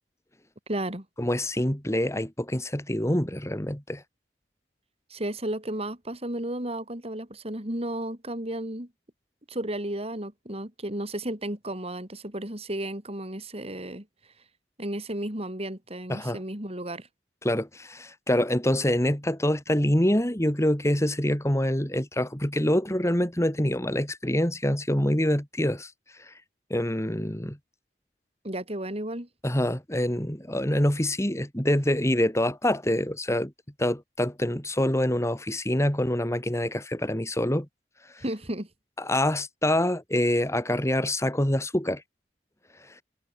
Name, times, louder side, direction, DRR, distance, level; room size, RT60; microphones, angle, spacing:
voice 1, 0.7-1.1 5.1-8.9 9.5-14.1 14.8-17.1 28.4-29.3 38.2-38.7, right 1 dB, 35° right, 5.8 m, -33 dB
voice 2, 1.2-4.0 16.1-16.4 17.4-25.9 26.2-26.3 26.7-27.6 29.4-33.5 33.8-37.7 38.1-38.2 39.0-42.0 42.8-43.0, left 1 dB, 15° left, 3.6 m, -26 dB
head